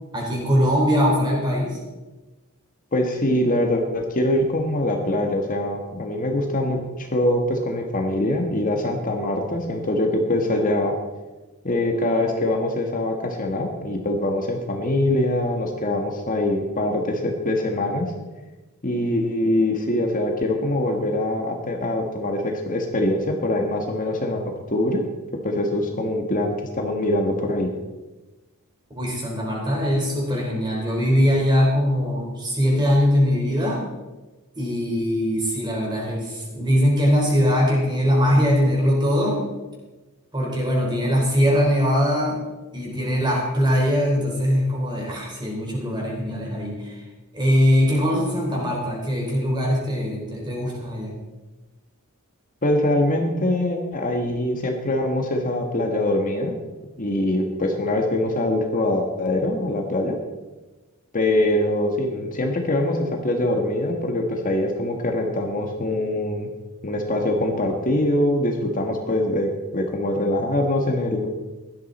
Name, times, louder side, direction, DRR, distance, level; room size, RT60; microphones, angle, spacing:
voice 1, 0.1-1.8 28.9-33.8 34.6-39.4 40.3-42.4 42.7-47.0 47.3-51.1, equal, 20° right, -2 dB, 4.3 m, -21 dB
voice 2, 2.9-10.9 11.6-18.1 18.8-24.4 24.7-25.0 25.4-27.7 52.6-56.5 57.0-60.2 61.1-66.5 66.8-71.3, left 1 dB, 40° left, 3 dB, 1.4 m, -23 dB
16.5 x 12.0 x 4.2 m, 1.2 s
head